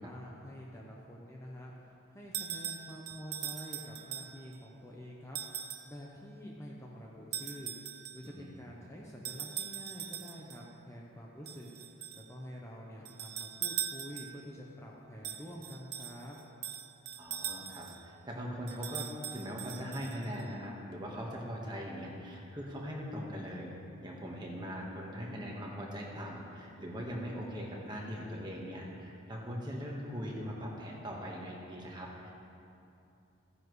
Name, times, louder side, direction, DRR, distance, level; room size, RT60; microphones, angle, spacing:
voice 1, 0.0-7.8 8.1-11.7 12.1-16.4, equal, 15° left, -3 dB, 0.7 m, -47 dB
sound 1, 2.3-4.6 5.4-5.9 7.3-8.3 9.2-10.6 11.5-12.3 13.1-14.5 15.2-18.0 18.7-20.4, right 10 dB, 50° right, 0.5 m, -41 dB
voice 2, 17.2-23.7 24.0-32.3, equal, 20° right, -2 dB, 1.4 m, -41 dB
15.0 x 9.8 x 3.2 m, 2.7 s
head